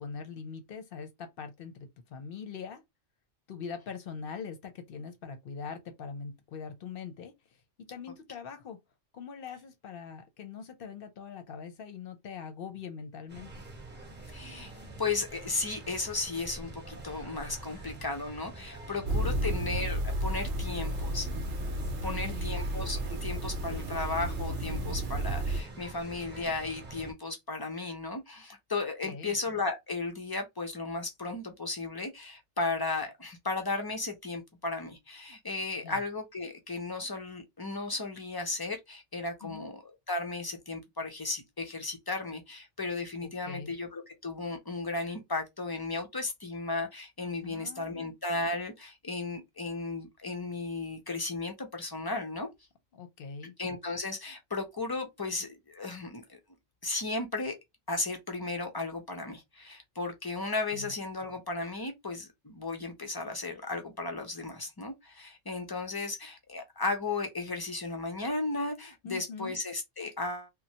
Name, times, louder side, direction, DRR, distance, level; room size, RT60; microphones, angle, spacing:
voice 1, 0.0-2.8 3.5-7.3 7.9-8.8 9.1-13.5 18.8-19.6 22.0-22.4 29.0-29.4 35.8-36.0 39.4-39.7 43.2-43.7 47.4-48.1 52.9-53.5 60.7-60.9 69.0-69.6, left 6 dB, 55° left, 0.8 m, -42 dB
sound 1, 13.3-27.1, right 2 dB, 10° right, 0.7 m, -46 dB
voice 2, 14.3-14.7 15.0-21.3 21.7-21.8 22.0-52.5 53.6-56.4 56.8-57.6 57.9-70.5, left 3 dB, 40° left, 0.3 m, -35 dB
sound 2, 19.1-25.6, right 1 dB, 70° right, 0.9 m, -32 dB
3.1 x 2.1 x 2.7 m
omnidirectional pair, 1.3 m